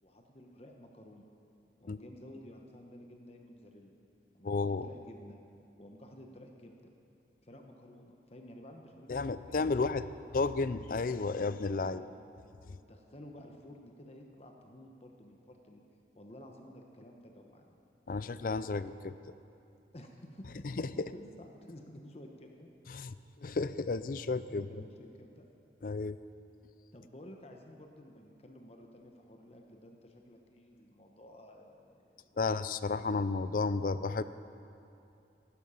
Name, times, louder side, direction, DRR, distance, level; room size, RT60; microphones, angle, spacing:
voice 1, 0.0-1.3 1.8-4.0 4.3-5.4 5.8-6.7 7.4-10.5 11.8-12.2 12.6-15.8 16.1-17.8 19.7-20.6 21.0-22.7 24.5-25.5 26.9-33.2, left 1 dB, 35° left, 2 dB, 1.1 m, -53 dB
voice 2, 4.4-4.9 9.1-10.0 10.3-12.0 18.1-19.1 20.8-20.9 22.9-23.1 23.4-24.7 25.8-26.2 32.4-34.2, left 3 dB, 50° left, 14 dB, 0.4 m, -32 dB
16.0 x 12.0 x 5.7 m, 2.8 s
head